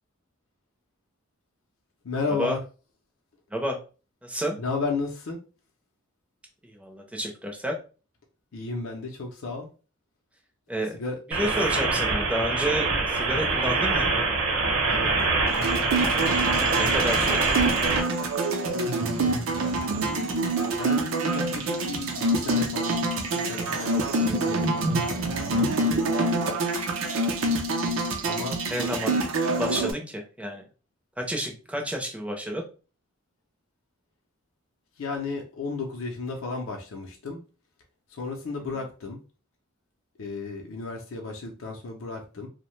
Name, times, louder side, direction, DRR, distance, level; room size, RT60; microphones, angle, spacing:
voice 1, 2.0-2.6 4.6-5.4 8.5-9.7 10.8-11.2 14.9-15.3 20.7-22.9 23.3-24.7 25.4-26.5 28.3-28.6 29.7-30.0 35.0-37.4 38.1-39.2 40.2-42.5, left 4 dB, 65° left, 1 dB, 0.5 m, -34 dB
voice 2, 4.2-4.6 6.6-7.8 10.7-11.0 11.4-14.1 16.7-17.8 28.7-29.2 29.5-30.6 31.2-32.6, equal, 5° right, 2 dB, 0.5 m, -30 dB
sound 1, 11.3-18.0, right 3 dB, 55° right, 0.9 m, -24 dB
sound 2, 15.5-29.9, right 2 dB, 75° right, 0.5 m, -26 dB
2.6 x 2.1 x 3.0 m, 0.35 s
head